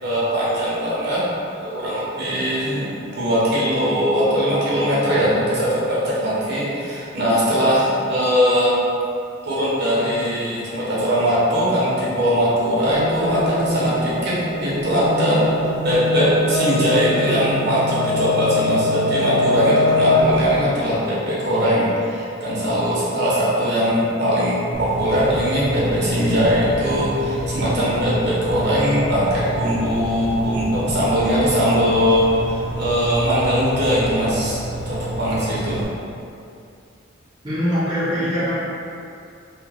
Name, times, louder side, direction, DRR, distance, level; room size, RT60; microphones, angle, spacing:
voice 1, 0.0-1.2 1.5-8.8 9.4-14.3 14.6-35.8, equal, 60° right, -8 dB, 0.9 m, -20 dB
sound 1, 12.9-20.6, left 1 dB, 85° right, 0.6 m, -22 dB
sound 2, 24.7-35.8, right 1 dB, 15° left, 1.0 m, -29 dB
voice 2, 37.4-38.6, equal, 20° right, -11 dB, 0.8 m, -22 dB
2.9 x 2.4 x 3.8 m, 2.5 s
head